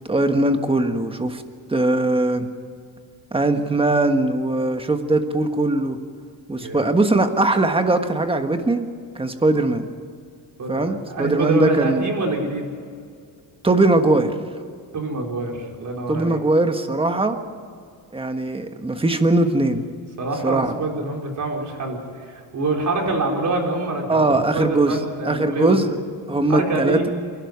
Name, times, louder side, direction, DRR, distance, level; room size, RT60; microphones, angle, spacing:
voice 1, 0.1-1.4 1.7-2.5 3.3-6.0 6.5-8.9 9.1-9.9 10.7-12.1 13.6-14.3 16.1-17.4 18.1-19.9 20.4-20.7 24.1-25.0 25.2-25.9 26.3-27.1, right 2 dB, 15° right, 7 dB, 1.4 m, -20 dB
voice 2, 10.6-12.7 14.9-16.4 20.2-24.3 24.5-25.8 26.5-27.1, right 3 dB, 45° right, 0 dB, 4.5 m, -25 dB
27.5 x 12.0 x 9.5 m, 2.2 s
cardioid pair, 150°, 43 cm